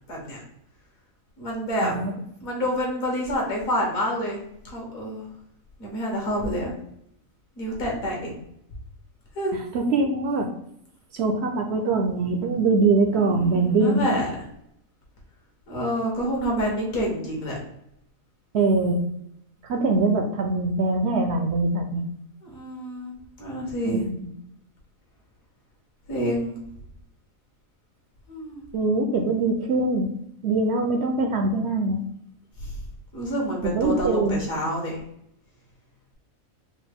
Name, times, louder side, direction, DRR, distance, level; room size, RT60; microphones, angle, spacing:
voice 1, 0.1-0.4 1.4-1.9 2.4-5.3 5.8-6.7 7.6-8.3 9.3-9.6 13.1-14.5 15.7-17.6 19.9-20.1 22.4-24.0 26.1-26.6 28.3-28.6 32.6-32.8 33.1-35.0, equal, 70° left, -2 dB, 1.7 m, -28 dB
voice 2, 1.8-2.1 9.7-10.5 11.1-14.1 18.5-19.0 19.6-22.0 23.8-24.3 28.7-30.1 30.4-32.0 33.6-34.4, right 3 dB, 65° right, 4 dB, 0.6 m, -23 dB
4.9 x 2.4 x 3.4 m, 0.75 s
omnidirectional pair, 1.5 m